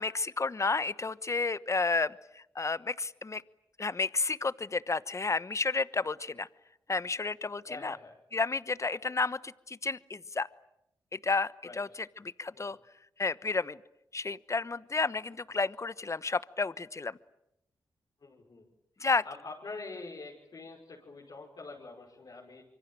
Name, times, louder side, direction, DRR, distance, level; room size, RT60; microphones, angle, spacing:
voice 1, 0.0-3.4 3.8-6.5 6.9-8.0 8.3-10.5 11.1-11.9 12.4-12.8 13.2-13.8 14.1-17.2 19.0-19.2, left 4 dB, 35° left, 17 dB, 1.1 m, -31 dB
voice 2, 7.7-8.2 11.6-11.8 12.5-12.8 18.2-18.7 19.2-22.6, left 3 dB, 55° left, -3 dB, 5.7 m, -45 dB
26.0 x 24.0 x 9.0 m, 0.81 s
supercardioid pair, 45°, 8 cm